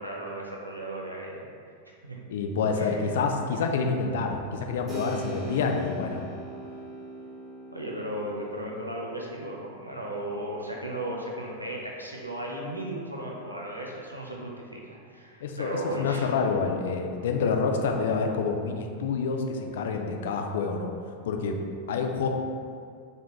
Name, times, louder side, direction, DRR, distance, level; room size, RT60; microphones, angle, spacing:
voice 1, 0.0-1.4 2.0-2.2 2.8-3.1 7.7-16.3 21.9-22.1, right 1 dB, 85° right, -2 dB, 0.6 m, -35 dB
voice 2, 2.3-6.3 15.4-20.9 21.3-21.6 21.9-22.3, left 5 dB, 60° left, 3 dB, 0.4 m, -27 dB
Keyboard (musical), 4.9-13.3, right 2 dB, 25° right, 1.1 m, -43 dB
3.8 x 3.5 x 3.0 m, 2.3 s
figure-of-eight pair, 90°, 0 cm